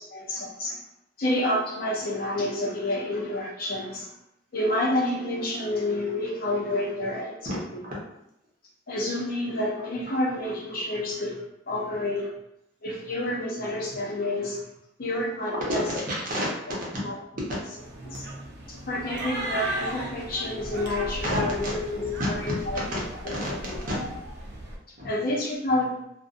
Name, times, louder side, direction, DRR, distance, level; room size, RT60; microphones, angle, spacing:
voice 1, 0.1-0.8 1.2-4.1 4.5-7.4 7.7-7.8 8.9-11.4 11.7-12.3 12.8-14.6 15.0-15.8 17.0-17.2 18.0-18.3 18.7-22.8 23.2-23.4 23.7-23.8 25.0-25.9, left 1 dB, 50° left, -3 dB, 0.6 m, -29 dB
voice 2, 15.5-16.5 17.3-17.5 21.2-21.7 22.2-23.0 23.3-24.2 25.0-25.1, equal, 50° right, -5 dB, 0.8 m, -30 dB
sound 1, 17.8-24.8, right 1 dB, 65° right, 0.5 m, -36 dB
2.6 x 2.1 x 2.4 m, 0.80 s
head